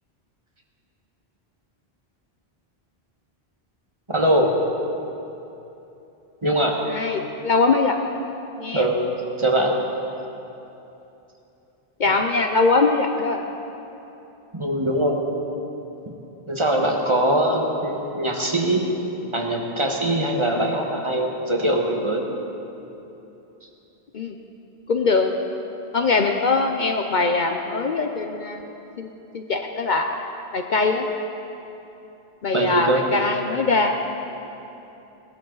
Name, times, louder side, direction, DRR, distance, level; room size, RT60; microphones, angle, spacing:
voice 1, 4.1-4.6 6.4-6.7 8.7-9.0 9.4-9.7 12.1-12.2 14.5-15.2 16.5-18.9 19.3-22.3 23.6-23.7 32.5-33.0, right 1 dB, 30° right, 0 dB, 1.3 m, -22 dB
voice 2, 6.9-8.0 8.6-8.9 12.0-13.4 24.1-24.4 24.9-25.3 25.9-28.6 29.0-30.1 30.5-31.1 32.4-34.1, left 3 dB, 55° left, 4 dB, 0.7 m, -22 dB
18.5 x 12.5 x 3.9 m, 3.0 s
omnidirectional pair, 1.1 m